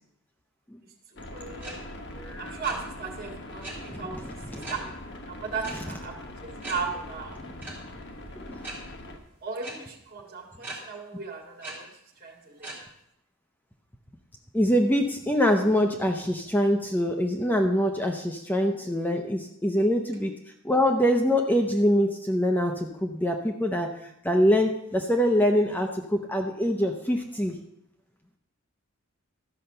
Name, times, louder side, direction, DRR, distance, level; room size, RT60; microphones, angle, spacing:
voice 1, 1.1-1.9 2.4-4.9 5.3-7.4 9.4-11.9 12.2-12.7, right 5 dB, 45° right, 1 dB, 1.9 m, -36 dB
sound 1, 1.2-9.2, left 1 dB, 55° left, 1.2 m, -42 dB
sound 2, 1.6-1.7 2.0-2.7 3.6-3.7 4.6-4.8 5.6-5.7 6.1-6.2 6.6-6.7 7.6-7.7 8.6-8.7 9.6-9.7 10.6-10.7 11.6-11.7 12.6-12.7, right 2 dB, 10° right, 3.7 m, -38 dB
voice 2, 2.2-2.5 3.9-4.0 4.5-4.7 8.4-8.6 14.5-20.3 20.6-23.9 24.2-27.5, equal, 10° left, 3 dB, 0.6 m, -24 dB
13.0 x 5.6 x 6.6 m, 0.79 s
head